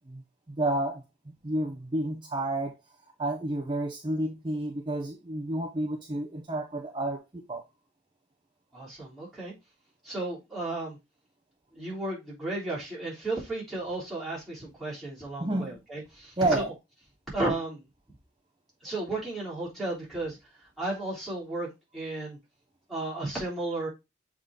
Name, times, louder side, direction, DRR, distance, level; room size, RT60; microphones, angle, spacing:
voice 1, 0.6-1.0 1.4-2.8 3.2-7.6 15.4-15.8 16.4-16.7, right 1 dB, 25° right, 0.7 m, -30 dB
voice 2, 8.7-9.5 10.0-11.0 11.7-16.6 17.3-17.8 18.8-21.7 21.9-22.4 22.9-23.9, right 2 dB, ahead, 3.4 m, -34 dB
6.9 x 3.7 x 3.6 m
head